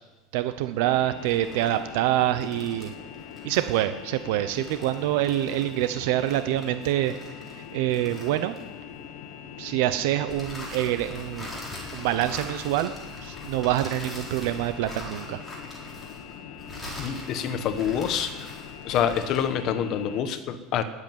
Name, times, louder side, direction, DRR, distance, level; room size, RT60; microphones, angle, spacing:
voice 1, 0.3-2.9 3.4-7.1 7.5-8.6 9.6-11.5 11.9-12.9 13.2-15.4, right 13 dB, 65° right, 10 dB, 0.8 m, -26 dB
sound 1, 0.8-20.2, left 8 dB, 70° left, 1.5 m, -42 dB
sound 2, 1.1-8.9 10.3-19.6, equal, 5° left, 4.0 m, -43 dB
voice 2, 17.0-18.5 18.8-20.8, left 8 dB, 35° left, 10 dB, 1.2 m, -27 dB
19.5 x 7.9 x 9.4 m, 1.2 s
cardioid pair, 175°, 0 cm